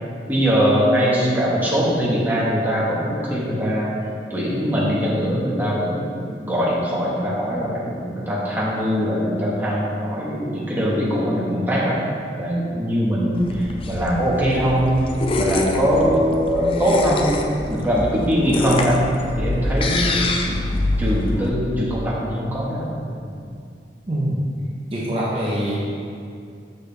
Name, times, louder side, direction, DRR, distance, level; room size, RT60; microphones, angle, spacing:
voice 1, 0.3-3.9 4.3-6.1 6.4-12.0 12.4-15.0 15.4-20.5 21.0-22.8 23.2-23.4, equal, 10° right, -7 dB, 1.3 m, -21 dB
sound 1, 13.3-21.5, left 2 dB, 30° left, 0.5 m, -25 dB
voice 2, 24.1-24.4 24.9-25.7, right 1 dB, 30° right, -7 dB, 0.9 m, -24 dB
6.8 x 6.2 x 3.4 m, 2.4 s
head